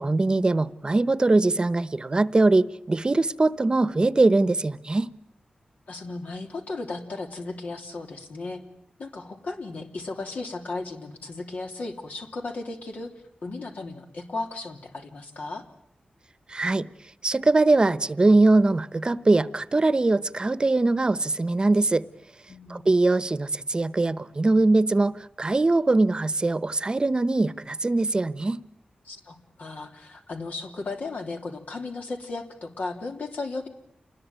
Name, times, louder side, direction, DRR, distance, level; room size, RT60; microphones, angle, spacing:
voice 1, 0.0-5.1 16.5-16.8 17.2-22.0 22.7-28.6, right 2 dB, 35° right, 16 dB, 1.0 m, -22 dB
voice 2, 5.9-8.6 9.0-13.1 13.4-15.6 22.5-22.9 29.0-33.7, left 3 dB, 70° left, 3 dB, 3.4 m, -35 dB
28.0 x 20.5 x 9.2 m, 0.71 s
wide cardioid pair, 100°, 3 cm